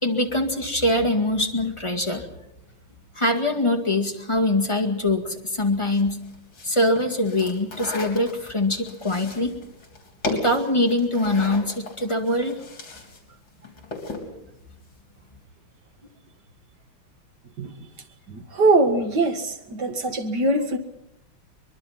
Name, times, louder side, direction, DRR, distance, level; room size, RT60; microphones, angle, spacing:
voice 1, 0.0-2.3 3.1-6.2 6.6-9.5 10.3-12.5, left 1 dB, 15° left, 3 dB, 1.8 m, -23 dB
sound 1, 5.8-13.2 13.5-14.3, left 2 dB, 65° left, 4.4 m, -36 dB
voice 2, 18.3-20.8, right 2 dB, 50° right, 6 dB, 2.4 m, -22 dB
24.0 x 21.5 x 5.9 m, 0.82 s
omnidirectional pair, 2.4 m